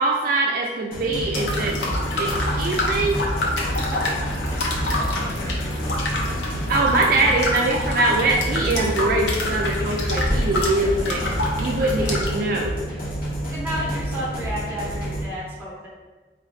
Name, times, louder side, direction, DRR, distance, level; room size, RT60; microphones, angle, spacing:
voice 1, 0.0-1.8 2.2-3.2 6.7-11.2 11.6-12.7, right 2 dB, 50° right, -1 dB, 0.3 m, -22 dB
sound 1, 0.9-15.2, right 1 dB, 50° left, 1.1 m, -29 dB
sound 2, 1.3-12.3, left 1 dB, 85° left, 0.7 m, -26 dB
voice 2, 7.0-7.3 12.0-12.2 13.5-15.9, equal, 15° right, -6 dB, 1.0 m, -32 dB
3.8 x 3.1 x 3.1 m, 1.3 s
head